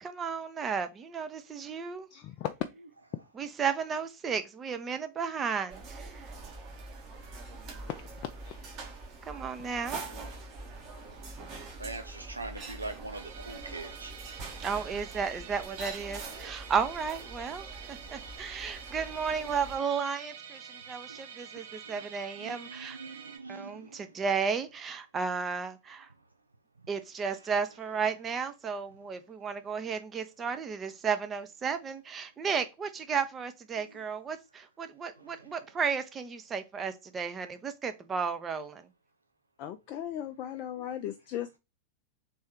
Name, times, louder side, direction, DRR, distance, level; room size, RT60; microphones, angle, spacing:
voice 1, 0.0-2.1 3.4-6.3 9.3-10.0 14.6-23.0 23.5-26.1 26.9-38.9, right 6 dB, 20° right, 0.6 m, -33 dB
voice 2, 2.1-2.5 7.9-8.0 8.4-8.6 39.6-41.6, left 11 dB, 40° left, 0.4 m, -37 dB
sound 1, 5.7-19.8, right 3 dB, 35° right, 1.2 m, -44 dB
voice 3, 11.8-14.1 21.1-21.2 21.9-22.1 22.4-23.9, right 3 dB, 80° right, 0.4 m, -42 dB
Musical instrument, 13.1-23.4, right 7 dB, 60° right, 0.8 m, -47 dB
3.4 x 3.2 x 4.5 m
figure-of-eight pair, 90°, 0 cm